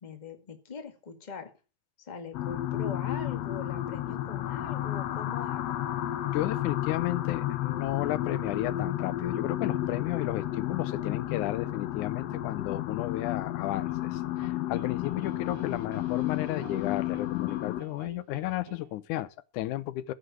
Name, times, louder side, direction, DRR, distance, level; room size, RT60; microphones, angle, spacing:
voice 1, 0.0-1.5 2.0-5.8, left 5 dB, 20° left, 1.6 m, -42 dB
sound 1, 2.3-17.8, left 13 dB, 70° left, 1.9 m, -32 dB
voice 2, 6.3-20.1, left 15 dB, 85° left, 2.3 m, -33 dB
sound 2, 13.4-19.2, right 4 dB, 50° right, 1.9 m, -51 dB
15.0 x 6.1 x 7.9 m
omnidirectional pair, 3.4 m